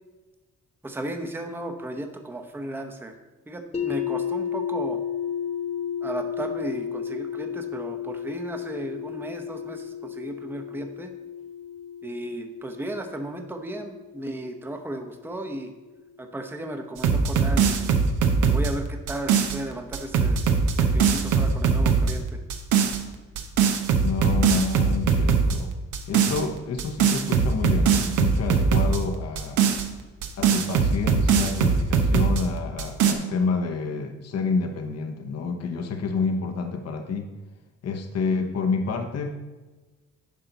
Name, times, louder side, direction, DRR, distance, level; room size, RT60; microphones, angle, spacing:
voice 1, 0.8-3.1 3.5-5.0 6.0-11.1 12.0-15.7 16.2-18.0 18.5-20.5 20.8-22.4, right 1 dB, 5° right, 5 dB, 0.8 m, -35 dB
sound 1, 3.7-15.7, left 8 dB, 20° left, 1.0 m, -33 dB
sound 2, 17.0-19.6 19.9-22.1 22.5-23.0 23.4-25.6 25.9-26.4 26.8-29.0 29.4-32.4 32.8-33.1, right 6 dB, 80° right, 1.0 m, -21 dB
voice 2, 24.0-25.7 26.1-29.6 30.4-37.3 37.8-39.4, left 4 dB, 55° left, 4 dB, 0.9 m, -28 dB
10.0 x 5.5 x 4.0 m, 1.2 s
cardioid pair, 90°, 30 cm